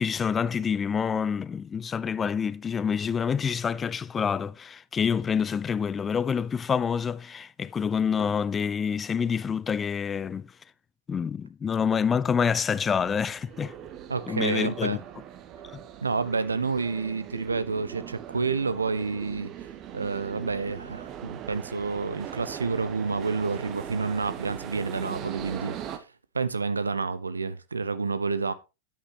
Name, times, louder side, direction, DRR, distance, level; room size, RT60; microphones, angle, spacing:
voice 1, 0.0-10.5 11.1-13.7 14.3-15.0 15.7-15.8, left 6 dB, 20° left, 0.5 m, -27 dB
sound 1, 12.5-26.0, right 10 dB, 35° right, 1.3 m, -40 dB
voice 2, 14.1-15.0 16.0-19.5 19.9-26.0 26.3-28.5, right 4 dB, 75° right, 0.8 m, -29 dB
12.5 x 9.1 x 3.0 m
figure-of-eight pair, 90°, 0 cm